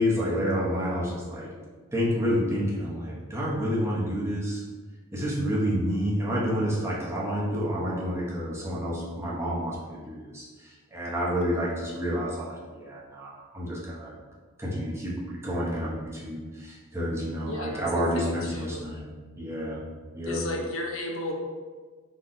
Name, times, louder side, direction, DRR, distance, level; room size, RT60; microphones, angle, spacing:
voice 1, 0.0-1.5 1.9-4.6 5.1-14.1 14.6-19.8 20.1-20.4, equal, 10° right, -6 dB, 0.9 m, -29 dB
voice 2, 17.5-17.8 18.1-18.8 20.3-21.3, left 2 dB, 65° left, 1 dB, 0.8 m, -34 dB
4.1 x 3.1 x 3.8 m, 1.4 s
head